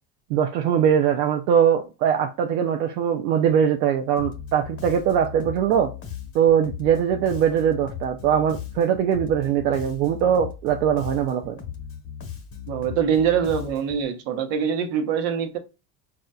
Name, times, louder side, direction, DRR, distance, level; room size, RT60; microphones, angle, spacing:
voice 1, 0.3-5.9 6.3-11.6, right 8 dB, 85° right, 0.6 m, -21 dB
Bass guitar, 4.2-14.0, left 8 dB, 25° left, 0.9 m, -37 dB
voice 2, 12.7-15.6, right 8 dB, 65° right, 1.0 m, -24 dB
4.1 x 2.4 x 2.2 m
hypercardioid pair, 85°, 48 cm